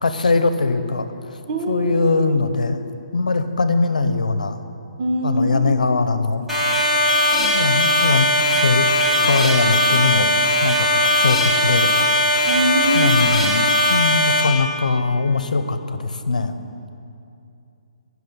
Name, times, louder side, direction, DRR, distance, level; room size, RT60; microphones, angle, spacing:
voice 1, 0.0-1.1 1.7-2.8 3.1-4.6 5.2-6.4 7.4-8.9 9.2-11.9 12.4-12.5 12.9-16.5, left 3 dB, 90° left, 10 dB, 0.8 m, -21 dB
voice 2, 1.5-2.3 5.0-5.7 12.4-13.3, right 1 dB, 45° right, 2 dB, 1.5 m, -23 dB
sound 1, 6.5-14.4, left 1 dB, ahead, 2.5 m, -18 dB
19.0 x 6.4 x 5.4 m, 2.6 s
hypercardioid pair, 145°, 4 cm